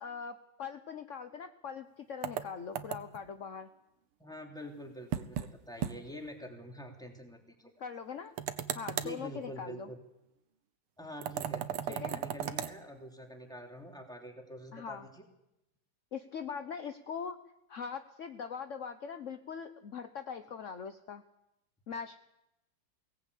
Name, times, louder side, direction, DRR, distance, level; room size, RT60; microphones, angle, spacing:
voice 1, 0.0-3.7 7.8-8.3 8.7-9.9 11.9-12.2 14.7-15.1 16.1-17.4 17.7-21.2 21.9-22.2, left 6 dB, 55° left, 8 dB, 0.9 m, -41 dB
sound 1, 2.2-3.3 5.1-5.5 5.8-6.0 6.3-6.4 8.4-9.2 11.2-12.7, right 10 dB, 85° right, 1.9 m, -36 dB
voice 2, 4.2-7.7 9.0-10.0 11.0-15.2, equal, ahead, 1 dB, 3.1 m, -46 dB
23.0 x 18.5 x 8.4 m, 0.88 s
omnidirectional pair, 2.4 m